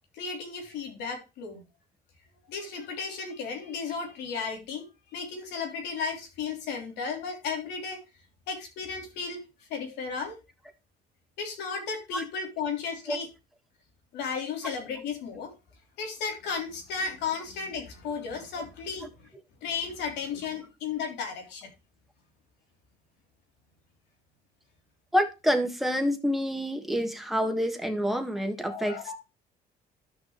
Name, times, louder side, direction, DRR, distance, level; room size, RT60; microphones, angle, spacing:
voice 1, 0.1-1.6 2.5-4.9 5.1-8.0 8.5-9.4 9.7-10.4 11.4-13.3 14.1-15.5 16.0-19.3 19.6-21.7 28.7-29.1, left 5 dB, 85° left, 3.4 m, -34 dB
voice 2, 25.1-29.1, equal, ahead, 1.7 m, -27 dB
13.0 x 6.2 x 3.2 m
cardioid pair, 110°, 17 cm